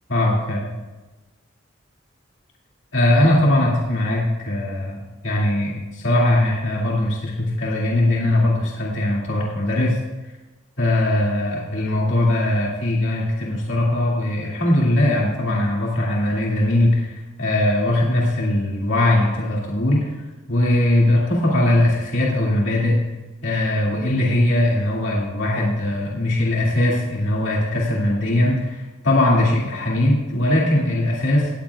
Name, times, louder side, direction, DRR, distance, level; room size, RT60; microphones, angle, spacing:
voice 1, 0.1-0.7 2.9-10.0 10.8-17.1 17.4-20.1 20.5-23.0 23.4-31.5, left 1 dB, 65° left, -4 dB, 2.4 m, -20 dB
18.0 x 14.5 x 2.4 m, 1.2 s
head